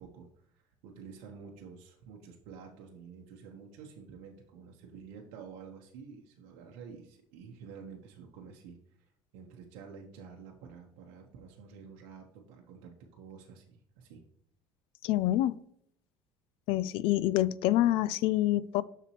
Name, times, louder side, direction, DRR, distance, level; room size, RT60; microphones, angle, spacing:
voice 1, 0.0-14.2, right 6 dB, 90° right, 0.9 m, -50 dB
voice 2, 15.0-15.6 16.7-18.8, left 14 dB, 70° left, 0.3 m, -27 dB
6.9 x 6.0 x 3.0 m
cardioid pair, 125°, 10 cm